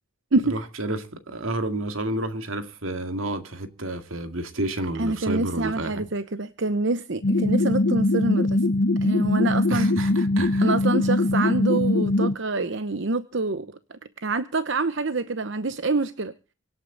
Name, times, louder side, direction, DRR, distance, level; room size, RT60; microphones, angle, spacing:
voice 1, 0.5-6.0 9.7-10.7, right 1 dB, 80° right, 2.3 m, -30 dB
voice 2, 5.0-8.6 9.0-9.9 10.6-16.3, right 3 dB, 60° right, 0.9 m, -26 dB
sound 1, 7.2-12.3, left 2 dB, 70° left, 0.8 m, -22 dB
25.0 x 9.0 x 3.9 m
head